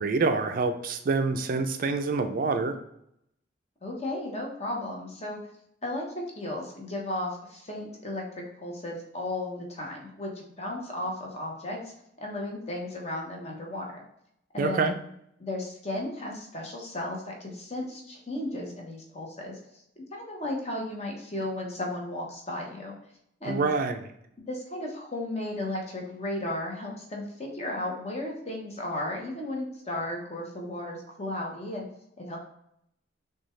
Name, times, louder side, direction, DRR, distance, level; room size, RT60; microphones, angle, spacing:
voice 1, 0.0-2.8 14.6-14.9 23.5-24.0, right 4 dB, 50° right, 7 dB, 0.4 m, -26 dB
voice 2, 3.8-5.4 5.8-11.9 12.2-14.0 14.5-14.9 15.4-19.6 20.0-22.9 23.4-23.7 24.4-31.9 32.2-32.4, left 1 dB, 35° left, 0 dB, 1.0 m, -34 dB
6.2 x 2.3 x 3.1 m, 0.74 s
head